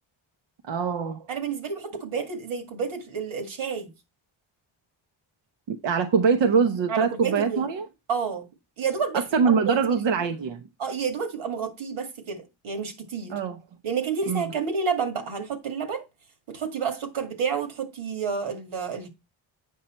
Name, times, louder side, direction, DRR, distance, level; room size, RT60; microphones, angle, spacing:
voice 1, 0.7-1.3 5.7-7.9 9.1-10.6 13.3-13.6 14.3-14.4, right 5 dB, 65° right, 0.8 m, -23 dB
voice 2, 1.3-3.9 6.9-7.7 8.1-8.5 8.8-9.2 9.7-10.0 10.8-13.4 13.8-16.0 16.5-19.1, right 6 dB, 90° right, 2.1 m, -30 dB
8.4 x 5.5 x 4.3 m
cardioid pair, 80°, 47 cm